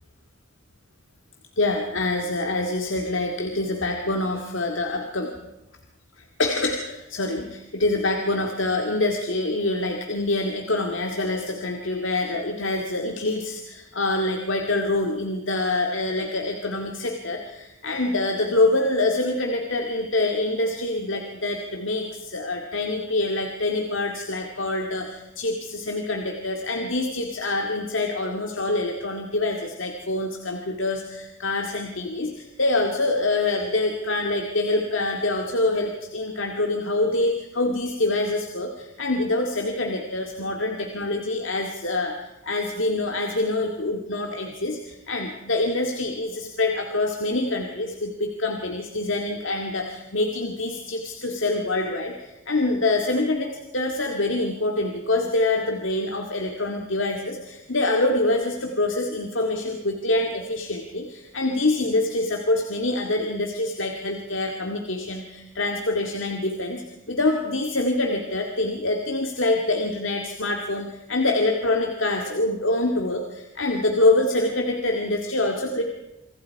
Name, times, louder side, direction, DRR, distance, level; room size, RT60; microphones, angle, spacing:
voice 1, 1.6-5.3 6.2-42.2 42.4-66.8 67.1-75.8, left 2 dB, 65° left, 3 dB, 2.2 m, -25 dB
27.5 x 25.0 x 4.7 m, 0.96 s
head